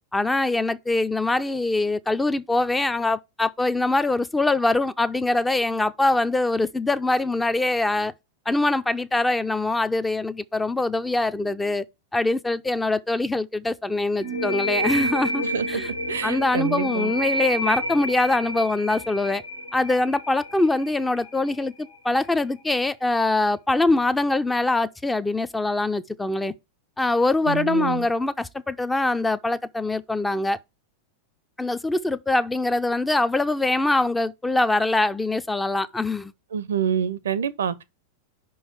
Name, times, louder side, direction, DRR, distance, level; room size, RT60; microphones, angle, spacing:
voice 1, 0.1-8.1 8.5-11.8 12.1-15.9 16.2-19.4 19.7-26.5 27.0-30.6 31.6-36.3, left 2 dB, 10° left, 0.4 m, -23 dB
sound 1, 14.2-21.6, right 1 dB, 75° left, 1.7 m, -29 dB
voice 2, 16.1-17.1 27.4-28.1 36.5-37.7, right 7 dB, 65° right, 0.5 m, -27 dB
5.5 x 4.6 x 4.6 m
figure-of-eight pair, 90°, 0 cm